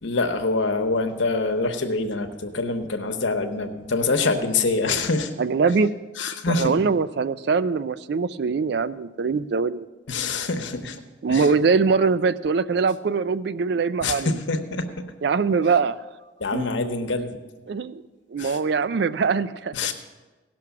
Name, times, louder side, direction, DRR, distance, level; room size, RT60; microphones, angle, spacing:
voice 1, 0.0-5.3 6.2-6.8 10.1-11.0 11.3-11.5 14.0-15.0 16.4-17.4 18.4-18.6 19.7-19.9, left 3 dB, 75° left, 6 dB, 1.0 m, -25 dB
voice 2, 5.4-5.9 6.5-9.9 11.2-14.3 15.2-16.0 16.5-16.7 17.7-18.0 18.3-19.7, right 5 dB, 60° right, 15 dB, 0.4 m, -22 dB
17.0 x 6.1 x 6.0 m, 1.2 s
head